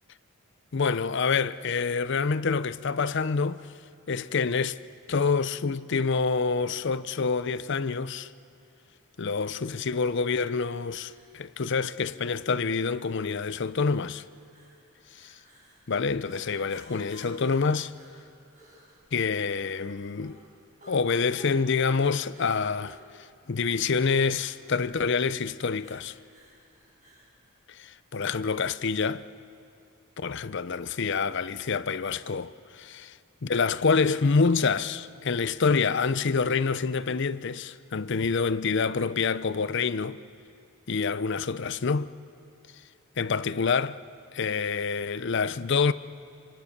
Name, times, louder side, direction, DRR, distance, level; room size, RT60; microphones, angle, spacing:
voice 1, 0.7-3.6 4.1-4.8 5.1-8.3 9.2-14.2 15.9-17.9 19.1-20.4 20.9-23.0 23.5-26.1 27.7-29.2 30.2-33.2 33.4-40.2 40.9-42.1 43.2-44.0 44.3-45.9, left 5 dB, 55° left, 0.6 m, -27 dB
sound 1, 9.4-27.3, equal, 40° right, 7.4 m, -56 dB
25.5 x 25.0 x 6.7 m
head